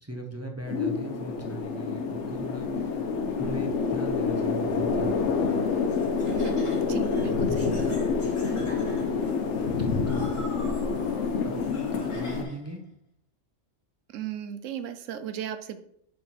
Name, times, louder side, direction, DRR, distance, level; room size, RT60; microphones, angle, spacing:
voice 1, 0.0-3.0 3.4-5.1 10.1-10.6 11.4-12.8, right 2 dB, 15° right, 2 dB, 0.6 m, -39 dB
sound 1, 0.7-12.4, left 5 dB, 70° left, 1.1 m, -27 dB
Laughter, 5.9-12.7, left 1 dB, 25° left, 1.4 m, -44 dB
voice 2, 6.3-6.6 6.9-8.0 14.1-15.8, right 10 dB, 85° right, 10 dB, 1.0 m, -37 dB
6.2 x 4.4 x 4.2 m, 0.72 s
omnidirectional pair, 1.3 m